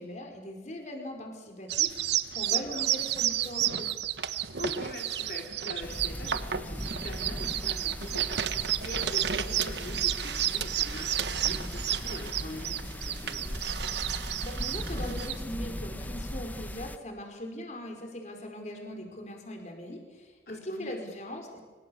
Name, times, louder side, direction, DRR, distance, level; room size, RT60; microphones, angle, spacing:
voice 1, 0.0-3.9 14.4-21.6, left 1 dB, 40° left, 3 dB, 5.0 m, -40 dB
sound 1, 1.7-15.4, right 11 dB, 75° right, 1.2 m, -31 dB
voice 2, 2.5-2.9 4.6-13.6 20.5-21.0, left 1 dB, 60° left, 0 dB, 4.5 m, -43 dB
sound 2, 5.8-17.0, equal, 10° left, 0.9 m, -38 dB
27.0 x 24.5 x 7.2 m, 1.4 s
head